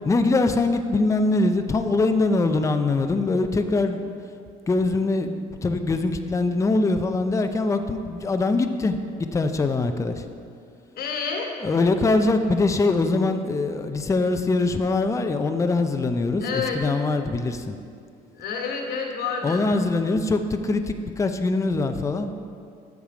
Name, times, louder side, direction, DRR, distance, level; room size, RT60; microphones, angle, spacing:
voice 1, 0.0-4.1 4.7-9.0 9.3-10.2 11.6-17.7 19.4-22.3, left 3 dB, 20° left, 7 dB, 0.5 m, -23 dB
voice 2, 10.9-11.6 16.4-16.8 18.3-19.6, left 5 dB, 65° left, 1 dB, 1.4 m, -29 dB
7.3 x 7.1 x 5.0 m, 2.3 s
cardioid pair, 110°, 17 cm